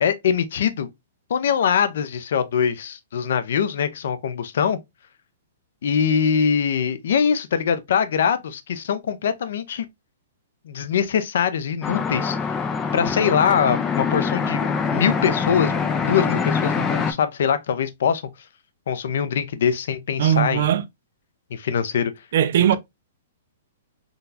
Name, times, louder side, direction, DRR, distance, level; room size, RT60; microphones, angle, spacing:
voice 1, 0.0-0.9 1.3-4.8 5.8-9.8 10.7-12.4 12.9-14.6 14.9-15.7 16.1-18.2 18.9-20.7 21.5-22.1, left 7 dB, 65° left, 0.5 m, -22 dB
sound 1, 11.8-17.1, left 5 dB, 15° left, 0.4 m, -24 dB
voice 2, 20.2-20.8 22.3-22.8, right 10 dB, 55° right, 0.3 m, -19 dB
3.8 x 2.3 x 2.6 m
hypercardioid pair, 160°, 0 cm